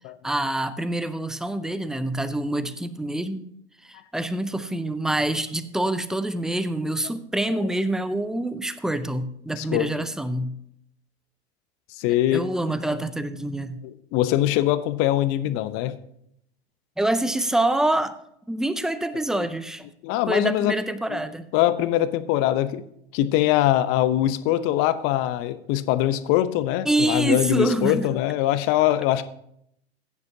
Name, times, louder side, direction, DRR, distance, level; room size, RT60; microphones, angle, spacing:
voice 1, 0.2-3.5 3.8-10.6 12.3-13.8 17.0-18.2 18.5-19.9 20.3-21.5 26.9-28.1, right 1 dB, ahead, 14 dB, 0.4 m, -26 dB
voice 2, 9.6-9.9 11.9-12.4 13.8-16.0 19.3-19.5 20.0-20.7 21.1-21.2 21.5-22.8 23.1-29.2, left 13 dB, 40° left, 12 dB, 0.8 m, -22 dB
15.5 x 9.4 x 2.8 m, 0.73 s
hypercardioid pair, 100°, 33 cm